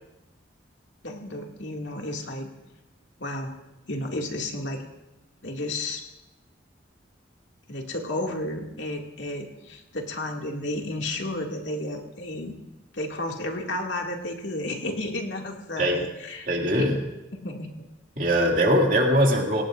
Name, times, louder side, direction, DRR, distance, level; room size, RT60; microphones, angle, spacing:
voice 1, 1.0-2.5 3.2-3.5 3.9-4.8 5.4-6.0 7.7-12.6 12.9-16.5 16.8-16.9 17.4-17.9, left 1 dB, 70° left, 1 dB, 2.3 m, -32 dB
voice 2, 16.5-17.0 18.2-19.6, equal, 45° right, 1 dB, 2.4 m, -21 dB
25.5 x 18.0 x 2.6 m, 0.95 s
head